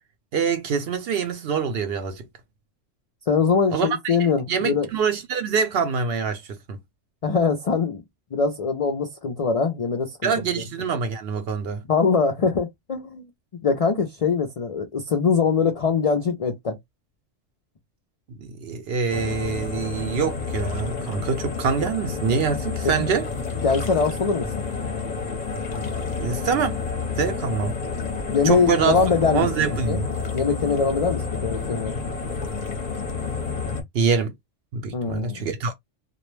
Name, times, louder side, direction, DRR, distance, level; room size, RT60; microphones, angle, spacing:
voice 1, 0.3-2.3 3.7-4.2 4.5-6.8 10.2-11.8 18.4-23.3 26.2-26.8 27.2-27.8 28.4-29.0 29.3-30.1 33.9-34.3 34.7-35.7, right 6 dB, 60° right, 0.7 m, -25 dB
voice 2, 3.3-4.9 7.2-8.0 8.3-10.3 11.9-13.3 13.6-16.8 22.8-22.9 23.6-24.5 28.3-29.5 29.9-30.0 30.3-31.9 34.9-35.4, left 5 dB, 70° left, 0.3 m, -22 dB
sound 1, 19.1-33.8, left 4 dB, 40° left, 0.7 m, -30 dB
2.3 x 2.1 x 3.0 m
omnidirectional pair, 1.3 m